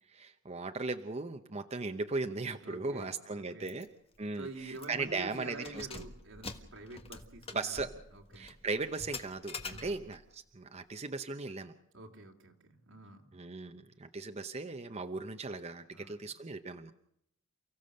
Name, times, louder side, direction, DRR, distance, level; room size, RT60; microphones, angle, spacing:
voice 1, 0.1-3.9 4.2-5.9 7.5-7.9 8.4-11.7 13.3-16.9, right 3 dB, 35° right, 7 dB, 0.8 m, -38 dB
voice 2, 2.6-3.7 4.4-8.5 9.7-10.0 11.9-13.3 15.9-16.3, right 2 dB, 75° right, 2 dB, 2.7 m, -48 dB
Keys jangling, 3.7-3.9 4.2-4.3 4.7-5.1 5.5-10.3, left 4 dB, 30° left, 1.6 m, -46 dB
29.5 x 15.5 x 6.7 m, 0.76 s
head